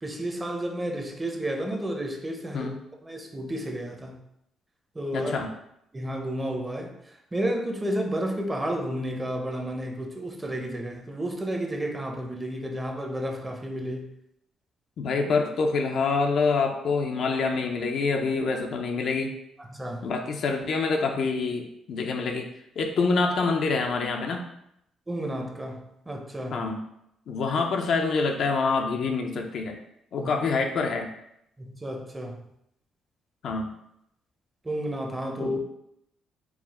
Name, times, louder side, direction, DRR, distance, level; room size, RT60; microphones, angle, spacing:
voice 1, 0.0-2.7 3.0-4.2 4.9-5.3 5.9-7.0 7.3-14.1 19.7-20.1 25.1-26.6 30.2-30.3 31.6-32.4 34.6-35.6, right 1 dB, 15° right, 2 dB, 0.7 m, -31 dB
voice 2, 5.1-5.5 15.0-19.3 20.0-22.5 22.8-24.5 26.5-26.8 27.3-29.8 30.1-31.1 33.4-33.7 35.4-35.5, left 4 dB, 65° left, 3 dB, 0.6 m, -26 dB
4.7 x 2.1 x 4.2 m, 0.78 s
cardioid pair, 90°, 0 cm